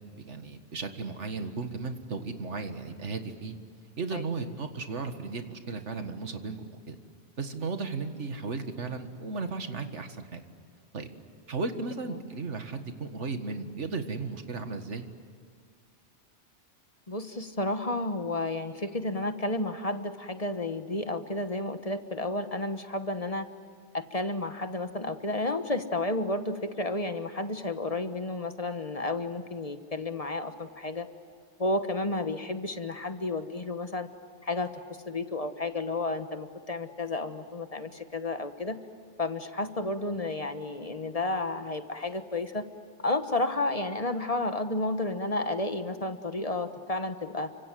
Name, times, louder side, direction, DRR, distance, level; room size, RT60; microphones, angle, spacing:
voice 1, 0.0-3.6 4.0-7.0 7.4-10.4 10.9-11.1 11.5-15.1, right 4 dB, 90° right, 7 dB, 2.1 m, -35 dB
voice 2, 17.1-23.5 23.9-31.1 31.6-34.1 34.4-34.7 35.1-38.8 39.2-42.6 43.0-47.5, left 2 dB, 35° left, 8 dB, 1.3 m, -31 dB
29.5 x 25.5 x 7.7 m, 2.1 s
omnidirectional pair, 1.2 m